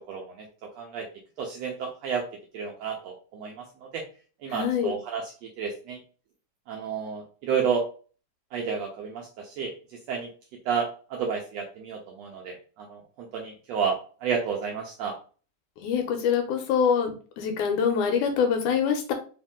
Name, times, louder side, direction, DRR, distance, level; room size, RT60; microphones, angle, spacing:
voice 1, 0.1-0.5 0.8-1.1 1.4-2.2 2.5-3.6 3.9-4.0 4.4-6.0 6.7-7.8 8.5-9.7 10.1-10.3 10.6-15.1, right 6 dB, 75° right, 1 dB, 1.5 m, -31 dB
voice 2, 4.5-4.9 15.8-19.1, left 7 dB, 80° left, 5 dB, 2.2 m, -25 dB
4.8 x 2.6 x 3.6 m, 0.38 s
omnidirectional pair, 3.6 m